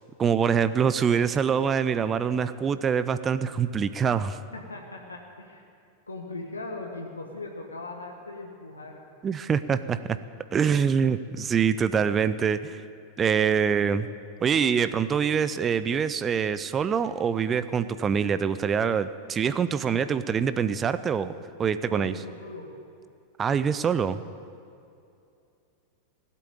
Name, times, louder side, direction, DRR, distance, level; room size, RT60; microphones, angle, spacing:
voice 1, 0.2-4.4 9.2-10.0 10.5-12.8 13.2-14.1 14.4-21.3 21.6-22.1 23.4-24.2, right 7 dB, 25° right, 13 dB, 0.5 m, -25 dB
voice 2, 4.5-5.6 6.1-9.0 21.8-22.7, left 2 dB, 80° left, 1 dB, 1.5 m, -39 dB
16.5 x 8.4 x 9.2 m, 2.6 s
figure-of-eight pair, 90°, 0 cm